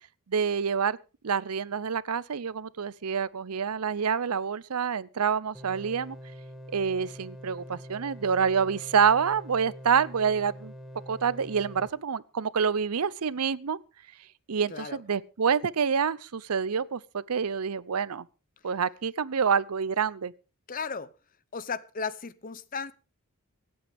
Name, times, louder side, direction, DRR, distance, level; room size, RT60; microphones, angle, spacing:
voice 1, 0.3-1.0 1.2-6.2 6.7-10.7 11.1-13.8 14.5-18.3 18.6-20.3, right 6 dB, 90° right, 0.6 m, -27 dB
sound 1, 5.5-11.9, equal, ahead, 1.5 m, -45 dB
voice 2, 14.7-15.0 20.7-21.1 21.5-22.9, left 5 dB, 40° left, 0.7 m, -35 dB
25.0 x 8.7 x 3.5 m
head